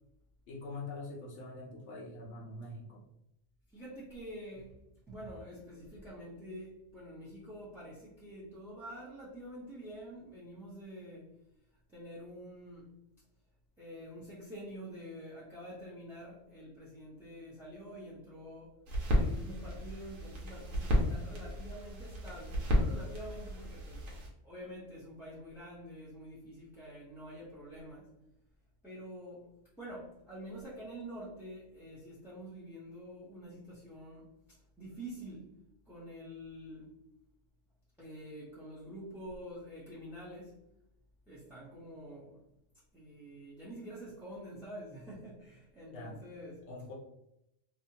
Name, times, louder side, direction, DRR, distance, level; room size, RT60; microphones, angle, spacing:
voice 1, 0.5-3.0 45.9-46.2 46.7-46.9, left 2 dB, 65° left, -2 dB, 0.9 m, -44 dB
voice 2, 3.7-4.7 5.1-11.3 11.9-12.9 13.8-18.7 19.1-24.1 24.4-28.1 28.8-29.5 29.8-35.5 35.9-36.9 38.0-40.6 41.3-42.4 42.9-46.7, equal, ahead, -9 dB, 0.6 m, -47 dB
sound 1, 18.9-24.3, equal, 90° right, 1.2 m, -33 dB
2.8 x 2.4 x 2.7 m, 0.83 s
omnidirectional pair, 1.3 m